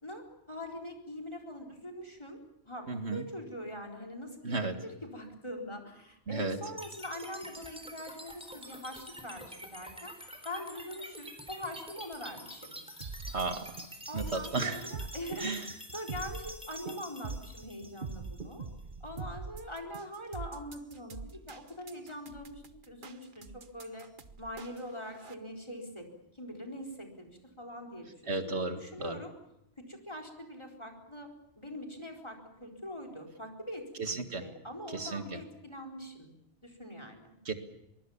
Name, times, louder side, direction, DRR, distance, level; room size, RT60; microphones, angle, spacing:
voice 1, 0.0-2.4 2.6-10.1 10.4-12.8 14.1-18.7 19.0-24.1 24.4-29.3 29.8-31.3 31.6-36.3 36.6-37.3, left 1 dB, 25° left, 2 dB, 4.3 m, -43 dB
voice 2, 2.9-3.2 4.4-4.7 6.3-6.6 13.3-13.7 14.1-14.8 15.4-15.7 28.3-29.2 34.0-34.4 34.9-35.4 37.5-37.6, right 3 dB, 85° right, 6 dB, 2.2 m, -34 dB
sound 1, 6.8-18.8, equal, 5° right, 3.8 m, -47 dB
sound 2, 13.0-25.3, right 4 dB, 50° right, 1.3 m, -43 dB
24.0 x 23.0 x 7.3 m, 0.85 s
omnidirectional pair, 1.1 m